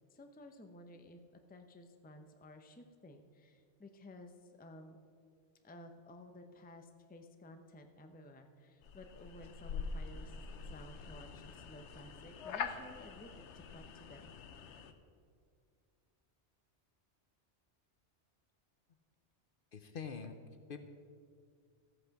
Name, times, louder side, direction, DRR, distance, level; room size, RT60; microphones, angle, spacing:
voice 1, 0.1-1.2 1.5-5.0 5.6-10.4 10.6-14.3, left 1 dB, 10° left, 6 dB, 0.6 m, -54 dB
sound 1, 8.8-14.9, left 6 dB, 80° left, 1.1 m, -45 dB
voice 2, 19.7-20.3 20.7-20.9, left 6 dB, 55° left, 8 dB, 0.8 m, -44 dB
14.0 x 8.2 x 5.9 m, 2.2 s
omnidirectional pair, 1.2 m